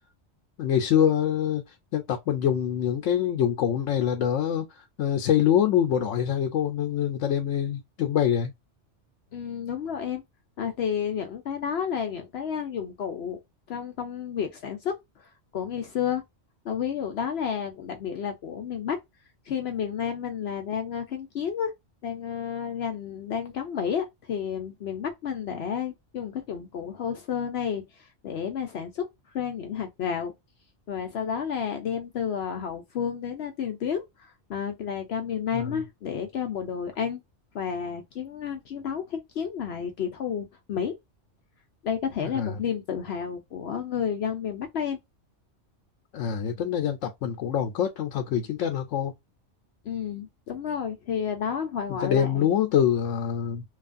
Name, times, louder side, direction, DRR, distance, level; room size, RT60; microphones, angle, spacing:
voice 1, 0.6-1.6 1.9-8.5 35.5-35.8 42.3-42.5 46.1-49.1 51.9-53.6, left 9 dB, 85° left, 1.0 m, -25 dB
voice 2, 9.3-10.2 10.6-13.4 13.7-14.9 15.5-16.2 16.6-19.0 19.5-21.7 22.0-29.1 29.3-30.3 30.9-37.2 37.5-40.9 41.8-45.0 49.8-52.5, left 7 dB, 65° left, 0.8 m, -31 dB
3.1 x 2.4 x 2.5 m
omnidirectional pair, 1.2 m